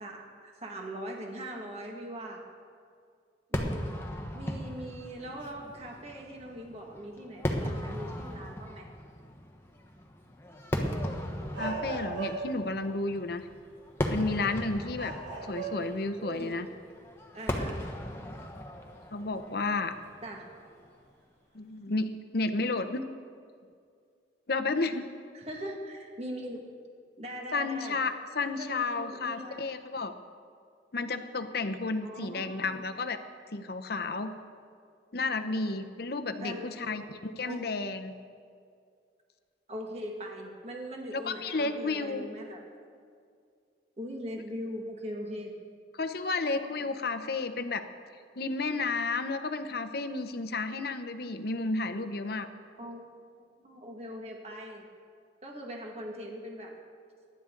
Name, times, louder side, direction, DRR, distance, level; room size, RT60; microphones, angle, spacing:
voice 1, 0.0-2.4 3.5-4.0 4.3-8.9 16.2-16.6 17.3-17.8 20.2-20.4 25.3-26.6 27.2-28.0 28.4-29.7 32.0-32.9 36.4-36.7 37.4-37.6 39.7-42.6 44.0-45.5 52.8-53.1 53.4-54.8 55.4-56.7, equal, 35° right, 0 dB, 1.9 m, -41 dB
Fireworks, 3.5-20.9, equal, 15° left, 1.2 m, -37 dB
sound 1, 11.5-12.7 14.2-14.4 14.9-16.0 16.4-16.5 19.0-19.1 20.7-21.0, right 4 dB, 85° right, 4.0 m, -37 dB
voice 2, 11.6-13.4 14.1-15.1 15.5-16.7 19.1-19.9 21.5-23.0 24.5-25.1 27.5-30.1 30.9-33.2 33.5-34.3 35.1-38.1 41.1-42.2 45.9-47.8 48.4-52.5, left 3 dB, 60° left, 8 dB, 0.8 m, -32 dB
23.0 x 11.0 x 3.9 m, 2.2 s
head